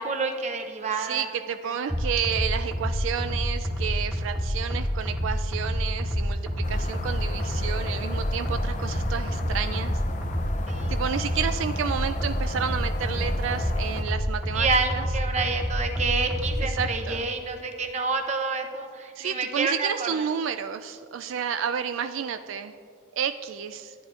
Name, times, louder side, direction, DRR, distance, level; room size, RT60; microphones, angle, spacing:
voice 1, 0.0-1.3 1.6-1.7 10.7-11.0 14.5-20.3, right 4 dB, 35° right, 5 dB, 0.7 m, -28 dB
voice 2, 1.0-6.4 6.7-10.0 10.9-15.0 16.6-17.3 19.2-22.7 23.2-23.9, right 8 dB, 75° right, 9 dB, 0.3 m, -31 dB
sound 1, 1.9-16.9, equal, 5° right, 1.3 m, -28 dB
sound 2, 6.6-14.0, left 3 dB, 35° left, 0.4 m, -37 dB
14.5 x 9.7 x 2.4 m, 2.2 s
head